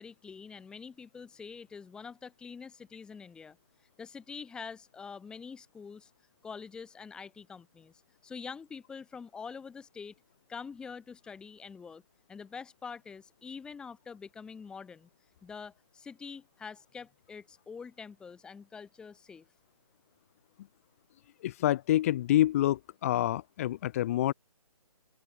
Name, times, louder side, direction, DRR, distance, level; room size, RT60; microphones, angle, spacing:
voice 1, 0.0-3.6 4.0-6.1 6.4-7.9 8.2-10.1 10.5-12.0 12.3-15.1 15.4-19.4, left 5 dB, 5° left, 3.8 m, -45 dB
voice 2, 21.4-24.3, left 13 dB, 25° left, 3.8 m, -27 dB
open air
hypercardioid pair, 165°, 19 cm